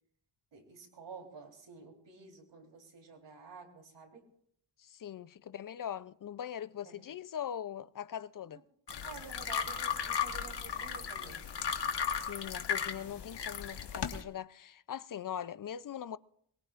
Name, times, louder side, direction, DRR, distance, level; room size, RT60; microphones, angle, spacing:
voice 1, 0.5-4.3 6.9-7.0 9.0-11.5, right 5 dB, 75° right, 3.8 m, -51 dB
voice 2, 4.8-8.6 12.2-16.2, left 9 dB, 50° left, 0.5 m, -41 dB
sound 1, 8.9-14.2, left 7 dB, 65° left, 1.5 m, -36 dB
23.0 x 22.5 x 2.5 m
wide cardioid pair, 105°, 44 cm